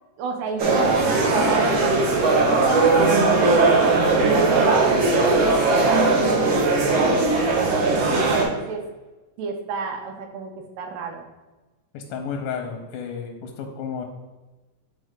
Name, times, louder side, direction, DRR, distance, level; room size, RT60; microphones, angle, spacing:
voice 1, 0.2-6.0 6.4-8.8 9.4-11.3, right 4 dB, 90° right, 4 dB, 2.4 m, -32 dB
sound 1, 0.6-8.4, right 3 dB, 65° right, 1.2 m, -19 dB
voice 2, 11.9-14.1, left 6 dB, 90° left, 4 dB, 2.2 m, -32 dB
7.9 x 3.6 x 3.6 m, 1.2 s
omnidirectional pair, 3.7 m